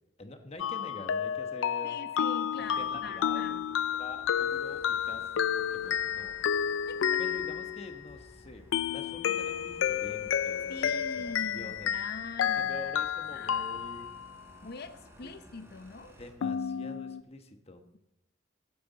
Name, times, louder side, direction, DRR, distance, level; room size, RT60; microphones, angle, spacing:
voice 1, 0.2-1.9 2.6-6.4 7.2-11.9 12.4-14.2 15.2-15.4 16.2-17.8, left 2 dB, 30° left, 6 dB, 1.2 m, -46 dB
sound 1, 0.6-8.1 8.7-14.4 16.4-17.2, left 8 dB, 70° left, 0.3 m, -31 dB
voice 2, 1.8-3.7 6.9-7.2 10.7-12.8 13.3-13.8 14.6-16.1, left 3 dB, 55° left, 11 dB, 0.7 m, -43 dB
sound 2, 2.6-16.3, equal, 15° right, 3.1 m, -56 dB
15.5 x 9.6 x 4.1 m, 0.82 s
head